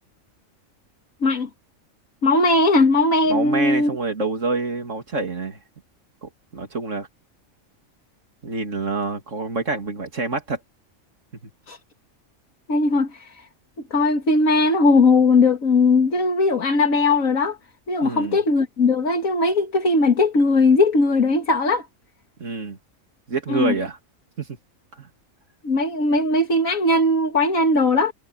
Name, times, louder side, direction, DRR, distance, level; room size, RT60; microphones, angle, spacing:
voice 1, 2.2-3.9 11.7-11.8 12.7-13.4 13.9-17.6 17.9-21.9 23.5-23.7 25.6-28.1, left 3 dB, 80° left, 2.3 m, -19 dB
voice 2, 3.3-5.6 6.2-7.1 8.4-10.6 18.0-18.4 22.4-22.8 23.3-24.0 24.4-24.5 25.0-25.1, right 3 dB, 65° right, 3.1 m, -27 dB
omnidirectional pair, 1.4 m